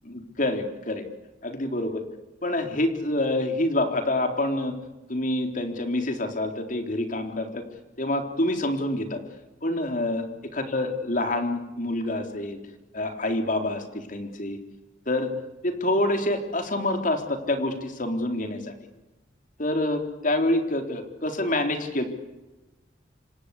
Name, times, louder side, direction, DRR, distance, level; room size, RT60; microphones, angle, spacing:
voice 1, 0.0-1.0 1.4-2.0 2.4-4.7 5.1-7.6 8.0-9.2 9.6-10.2 10.5-12.6 12.9-14.6 15.1-15.3 15.6-18.7 19.6-22.0, left 1 dB, 45° left, 6 dB, 3.8 m, -27 dB
27.5 x 25.0 x 8.4 m, 1.1 s
head